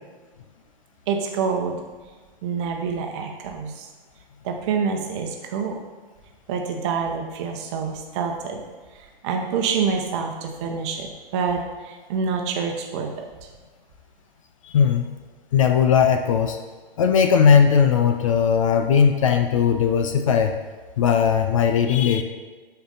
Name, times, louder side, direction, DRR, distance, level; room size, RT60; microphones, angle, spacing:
voice 1, 1.1-1.7 2.4-3.9 4.4-5.8 6.5-8.6 9.2-13.3, right 6 dB, 30° right, 3 dB, 1.1 m, -27 dB
voice 2, 14.6-15.1 15.5-16.6 17.0-20.5 21.0-22.2, left 7 dB, 35° left, 6 dB, 0.5 m, -18 dB
12.0 x 4.6 x 3.9 m, 1.4 s
figure-of-eight pair, 120°, 29 cm